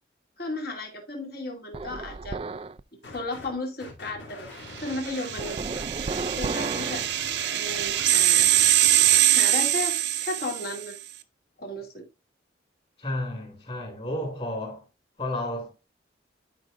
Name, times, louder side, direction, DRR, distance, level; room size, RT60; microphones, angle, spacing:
voice 1, 0.4-2.4 3.0-4.5 4.8-5.6 6.1-7.1 7.5-8.5 9.3-11.0 11.6-12.1, left 2 dB, 55° left, 2.5 m, -34 dB
sound 1, 1.7-2.8 5.4-7.1, right 3 dB, 30° right, 0.3 m, -33 dB
sound 2, 3.0-3.5 3.8-9.2, left 2 dB, 75° left, 2.8 m, -44 dB
sound 3, 4.9-10.9, right 12 dB, 65° right, 0.7 m, -23 dB
voice 2, 13.0-14.8 15.2-15.7, left 1 dB, 30° left, 3.3 m, -32 dB
12.0 x 5.0 x 2.6 m
head